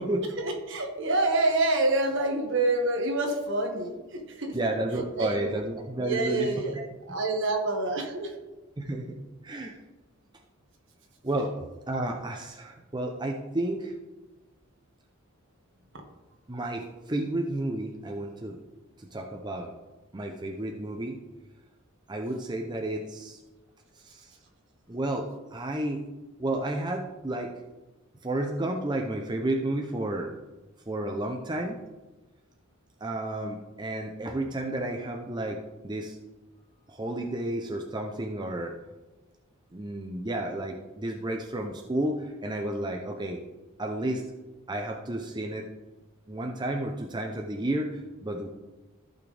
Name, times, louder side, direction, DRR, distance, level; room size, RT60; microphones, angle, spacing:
voice 1, 0.4-4.6 4.9-5.5 6.0-6.8 7.1-8.3, right 2 dB, 60° right, 3 dB, 1.6 m, -27 dB
voice 2, 4.5-6.8 8.8-9.8 11.2-11.5 11.9-13.9 16.5-18.6 19.0-19.7 20.1-21.2 22.1-23.4 23.9-24.4 24.9-26.1 26.4-27.5 28.2-30.4 30.9-31.8 33.0-36.2 36.9-38.7 39.7-43.4 43.8-44.2 44.7-45.7 46.3-48.5, right 1 dB, 20° right, 2 dB, 0.6 m, -32 dB
14.5 x 6.1 x 3.4 m, 1.1 s
head